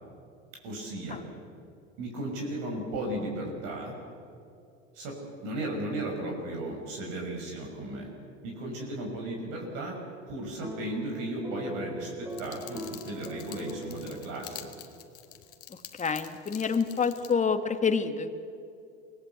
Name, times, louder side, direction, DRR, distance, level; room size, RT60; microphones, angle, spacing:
voice 1, 0.6-1.2 2.0-3.9 4.9-8.1 8.4-10.0 10.3-14.7, right 1 dB, 60° right, 0 dB, 6.1 m, -35 dB
sound 1, 10.6-15.1, right 1 dB, 10° right, 1.7 m, -42 dB
sound 2, 12.3-17.3, left 10 dB, 40° left, 1.9 m, -47 dB
voice 2, 16.0-18.3, left 5 dB, 20° left, 8 dB, 1.7 m, -27 dB
24.5 x 18.5 x 8.2 m, 2.5 s
hypercardioid pair, 95°, 36 cm